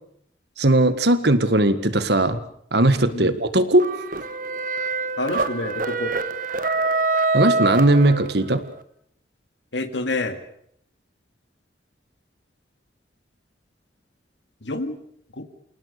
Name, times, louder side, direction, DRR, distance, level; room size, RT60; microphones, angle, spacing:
voice 1, 0.6-2.4 2.7-3.9 7.3-8.6, right 1 dB, 65° right, 12 dB, 1.7 m, -18 dB
sound 1, 3.8-8.6, right 3 dB, 45° right, 1.5 m, -25 dB
voice 2, 5.2-6.1 9.7-10.4 14.6-15.0 15.3-15.4, left 2 dB, 75° left, 8 dB, 2.2 m, -28 dB
28.5 x 18.5 x 6.8 m, 0.69 s
head